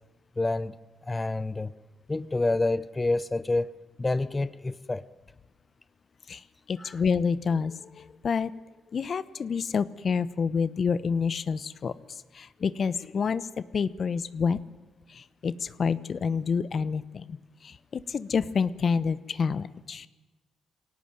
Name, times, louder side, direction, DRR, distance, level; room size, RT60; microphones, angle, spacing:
voice 1, 0.4-0.8 1.0-1.7 2.1-5.0 6.8-6.9, left 2 dB, 25° left, 16 dB, 0.8 m, -28 dB
voice 2, 6.7-8.5 8.9-11.9 12.4-14.6 15.4-17.2 18.1-20.1, left 5 dB, 55° left, 17 dB, 0.9 m, -28 dB
22.0 x 18.0 x 9.2 m, 1.2 s
cardioid pair, 65°, 0 cm